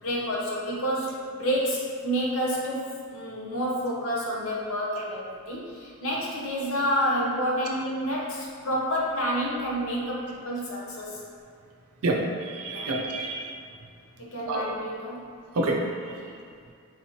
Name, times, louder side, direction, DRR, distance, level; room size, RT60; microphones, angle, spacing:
voice 1, 0.0-11.2 12.7-12.9 14.2-15.2 16.1-16.3, equal, 65° left, -4 dB, 0.8 m, -29 dB
voice 2, 12.0-13.6 14.5-14.6 15.5-15.8 16.1-16.2, right 2 dB, 80° right, 0 dB, 0.5 m, -28 dB
4.0 x 3.0 x 2.8 m, 2.2 s
head